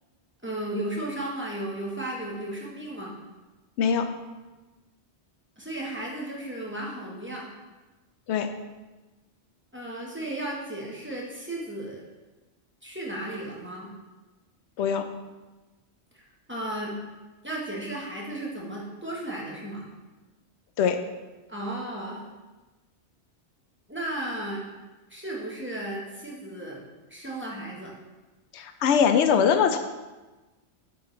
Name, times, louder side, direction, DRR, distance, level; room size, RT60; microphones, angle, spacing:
voice 1, 0.4-3.2 5.6-7.5 9.7-12.0 12.8-13.9 16.1-16.2 16.5-17.0 17.4-19.9 21.5-22.2 23.9-24.6 25.1-26.8 27.1-27.9, right 1 dB, 10° right, -4 dB, 1.0 m, -34 dB
voice 2, 28.5-29.8, left 7 dB, 85° left, 7 dB, 0.9 m, -22 dB
7.1 x 4.8 x 3.2 m, 1.2 s
omnidirectional pair, 1.1 m